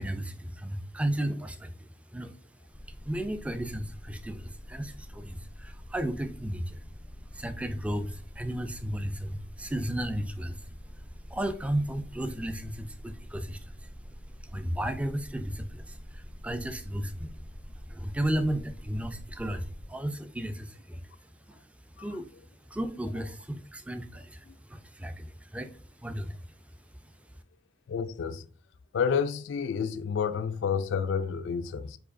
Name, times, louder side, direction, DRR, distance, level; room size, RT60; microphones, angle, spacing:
voice 1, 0.0-27.4, right 1 dB, 5° right, 0.3 m, -35 dB
sound 1, 2.7-19.8, equal, 85° right, 2.3 m, -46 dB
voice 2, 27.9-28.5 28.9-32.0, left 6 dB, 85° left, 0.3 m, -30 dB
4.8 x 4.4 x 2.5 m
head